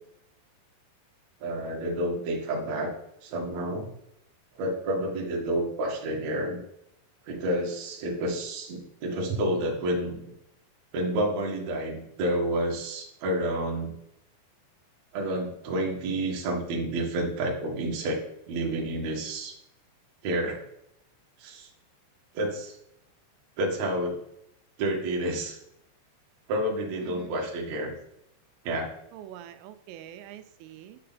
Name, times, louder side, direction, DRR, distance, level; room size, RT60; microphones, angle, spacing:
voice 1, 1.4-2.9 3.2-3.9 4.5-6.6 7.3-10.2 10.9-13.9 15.1-18.2 18.5-19.5 20.2-20.6 21.4-21.7 22.3-22.8 23.6-24.2 24.8-25.6 26.5-27.9 28.6-28.9, right 1 dB, 50° right, -1 dB, 2.3 m, -29 dB
voice 2, 27.0-27.4 29.1-31.0, right 11 dB, 90° right, 10 dB, 3.3 m, -45 dB
10.0 x 6.6 x 4.1 m, 0.78 s
omnidirectional pair, 5.7 m